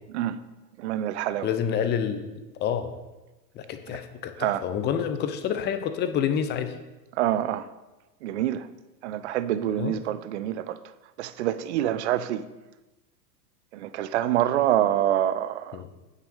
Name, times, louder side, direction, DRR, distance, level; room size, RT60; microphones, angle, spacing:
voice 1, 0.8-1.5 4.4-4.6 7.2-7.7 8.2-8.7 9.0-10.8 11.2-12.4 13.7-15.8, right 12 dB, 45° right, 14 dB, 0.7 m, -26 dB
voice 2, 1.4-2.3 2.6-2.9 3.6-6.8 9.8-10.0 15.7-15.9, left 8 dB, 20° left, 9 dB, 0.8 m, -28 dB
9.0 x 6.8 x 6.6 m, 1.1 s
figure-of-eight pair, 95°, 48 cm